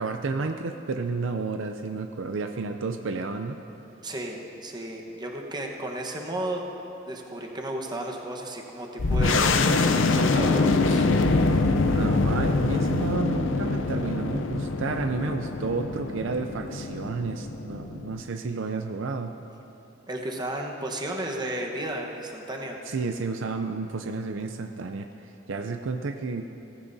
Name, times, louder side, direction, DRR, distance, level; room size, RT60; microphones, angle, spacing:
voice 1, 0.0-3.6 11.4-19.3 22.9-25.1 25.5-26.5, right 4 dB, 65° right, 6 dB, 0.5 m, -31 dB
voice 2, 4.0-6.6 7.1-11.1 20.1-22.8, right 1 dB, 20° right, 0 dB, 1.1 m, -33 dB
sound 1, 9.0-18.2, left 3 dB, 65° left, 0.6 m, -24 dB
18.5 x 15.5 x 2.7 m, 2.9 s
head